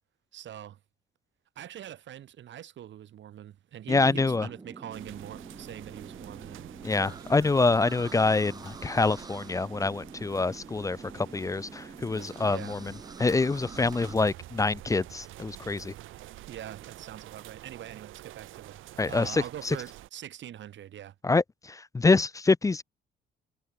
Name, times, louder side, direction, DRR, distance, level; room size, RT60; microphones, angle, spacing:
voice 1, 0.3-0.8 1.6-7.2 12.5-12.8 16.2-21.1, right 11 dB, 70° right, 2.8 m, -43 dB
voice 2, 3.9-4.5 6.8-12.9 13.2-15.9 19.0-19.8 21.2-22.8, left 3 dB, 15° left, 0.4 m, -26 dB
sound 1, 3.9-14.1, right 3 dB, 20° right, 1.0 m, -46 dB
sound 2, 4.9-20.1, right 15 dB, 90° right, 3.4 m, -48 dB
cardioid pair, 90°, 20 cm